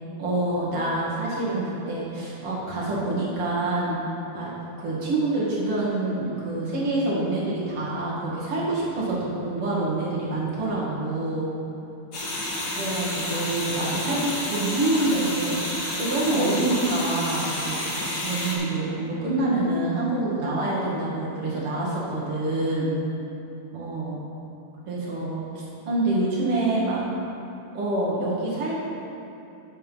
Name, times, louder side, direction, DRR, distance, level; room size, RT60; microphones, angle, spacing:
voice 1, 0.2-4.0 4.3-4.5 4.8-11.5 12.7-17.8 18.2-23.0 23.7-24.1 24.9-27.0 27.7-28.8, right 2 dB, 50° right, -7 dB, 2.7 m, -26 dB
sound 1, 12.1-18.6, left 1 dB, 45° left, 1.5 m, -30 dB
8.8 x 6.9 x 5.4 m, 2.9 s
omnidirectional pair, 3.5 m